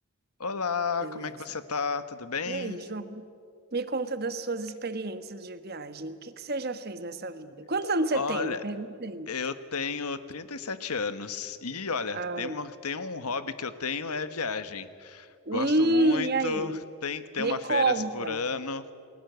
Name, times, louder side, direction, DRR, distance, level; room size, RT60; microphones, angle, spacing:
voice 1, 0.4-2.8 8.1-8.6 9.3-18.9, left 5 dB, 90° left, 12 dB, 1.3 m, -33 dB
voice 2, 2.5-3.2 3.7-9.3 12.1-12.6 15.5-16.8 17.4-18.4, right 2 dB, 45° right, 11 dB, 1.3 m, -29 dB
29.5 x 20.5 x 8.2 m, 2.3 s
head